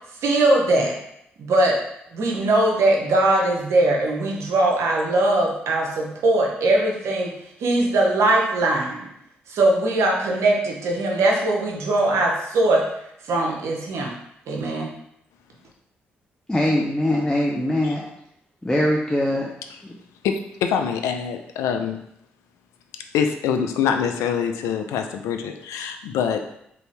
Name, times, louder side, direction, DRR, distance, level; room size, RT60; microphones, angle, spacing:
voice 1, 0.2-0.9 1.4-1.8 2.1-7.3 7.6-9.1 9.5-12.8 13.3-14.1 14.5-14.9, right 2 dB, 65° right, 0.7 m, -20 dB
voice 2, 16.5-18.0 18.6-19.5 19.8-19.9, left 1 dB, 10° left, 0.5 m, -22 dB
voice 3, 20.2-22.0 23.1-26.4, left 7 dB, 70° left, 0.3 m, -24 dB
2.8 x 2.6 x 3.3 m
hypercardioid pair, 40°, 5 cm